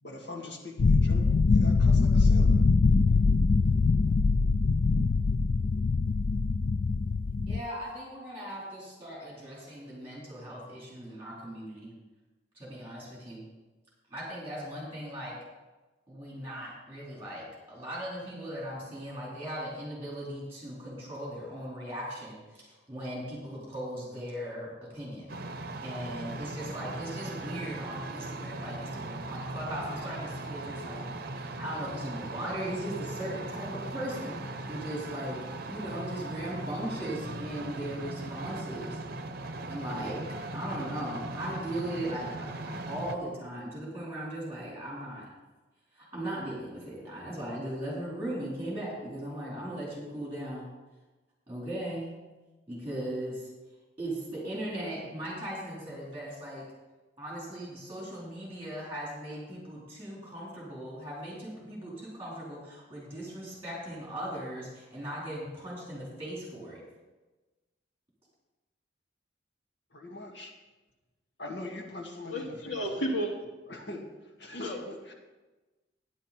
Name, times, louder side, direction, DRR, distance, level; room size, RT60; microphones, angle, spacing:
voice 1, 0.0-2.6 69.9-70.5 71.4-72.8 73.7-75.1, left 2 dB, 65° left, 0 dB, 1.9 m, -42 dB
sound 1, 0.8-7.6, left 4 dB, 50° left, 0.3 m, -23 dB
voice 2, 7.5-11.9 12.5-13.4 14.1-15.4 16.1-25.3 25.8-31.0 31.3-34.4 34.7-35.4 35.7-39.0 39.7-40.2 40.5-45.3 45.9-50.6 51.5-52.1 52.7-53.5 54.0-56.6 57.2-66.8, right 1 dB, 15° right, -6 dB, 4.4 m, -38 dB
sound 2, 25.3-43.2, right 2 dB, 55° right, 0.8 m, -39 dB
voice 3, 72.3-73.3 74.5-74.8, equal, 85° left, -2 dB, 2.8 m, -32 dB
11.5 x 10.0 x 4.4 m, 1.2 s
head